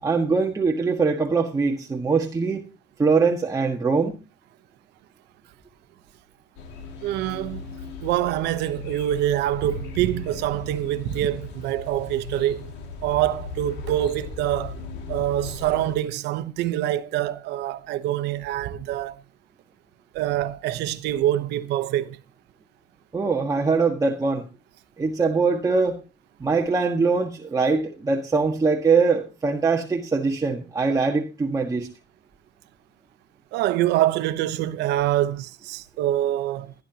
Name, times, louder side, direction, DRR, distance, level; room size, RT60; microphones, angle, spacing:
voice 1, 0.0-2.6 3.0-4.2 23.1-24.4 25.0-26.0 26.4-31.9, right 4 dB, 20° right, 1.6 m, -22 dB
sound 1, 6.6-16.0, left 4 dB, 85° left, 2.4 m, -38 dB
voice 2, 7.0-7.6 8.0-12.7 13.0-14.8 15.1-19.2 20.1-22.2 33.5-36.7, right 13 dB, 90° right, 0.9 m, -25 dB
21.0 x 11.0 x 2.9 m
cardioid pair, 110°, 17 cm